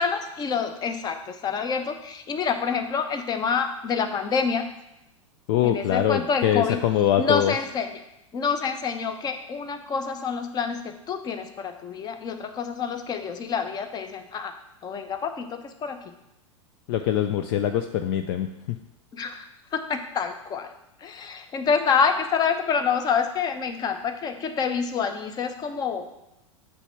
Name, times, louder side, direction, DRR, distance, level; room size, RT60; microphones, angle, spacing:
voice 1, 0.0-4.7 5.6-6.8 7.2-8.0 8.3-14.5 14.8-16.0 19.1-20.7 21.0-26.1, left 6 dB, 25° left, 8 dB, 0.8 m, -27 dB
voice 2, 5.5-7.5 16.9-18.8, left 10 dB, 50° left, 7 dB, 0.5 m, -23 dB
8.1 x 3.4 x 5.6 m, 0.86 s
figure-of-eight pair, 100°, 17 cm